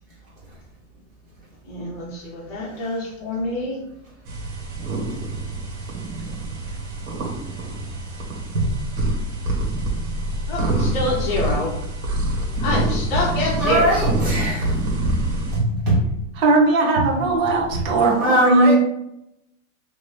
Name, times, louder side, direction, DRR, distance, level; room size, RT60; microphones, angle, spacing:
voice 1, 1.6-3.8 10.5-11.7 12.6-14.5, left 1 dB, 20° left, -5 dB, 0.8 m, -26 dB
sound 1, 4.3-15.6, right 1 dB, 90° right, 1.4 m, -26 dB
voice 2, 13.6-15.1 15.5-16.1 17.0-17.1 17.7-17.8 18.2-18.8, right 1 dB, 15° right, -5 dB, 0.4 m, -21 dB
voice 3, 16.4-18.8, right 2 dB, 50° right, 0 dB, 0.8 m, -18 dB
3.0 x 2.6 x 3.2 m, 0.81 s
supercardioid pair, 170°, 42 cm